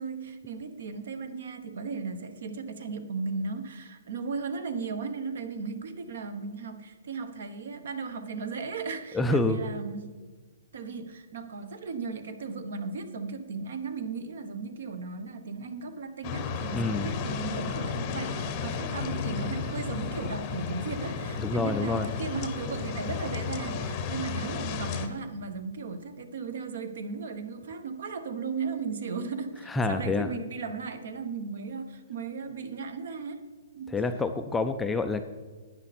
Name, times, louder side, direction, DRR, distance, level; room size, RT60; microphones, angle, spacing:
voice 1, 0.0-10.1 10.7-33.4 33.8-33.9, right 4 dB, 55° right, 10 dB, 1.1 m, -36 dB
voice 2, 9.1-9.6 16.7-17.1 21.4-22.1 29.7-30.3 33.9-35.2, left 3 dB, 5° left, 7 dB, 0.3 m, -27 dB
sound 1, 16.2-25.1, left 6 dB, 20° left, 0.8 m, -33 dB
12.5 x 9.8 x 4.2 m, 1.4 s
hypercardioid pair, 170°, 0 cm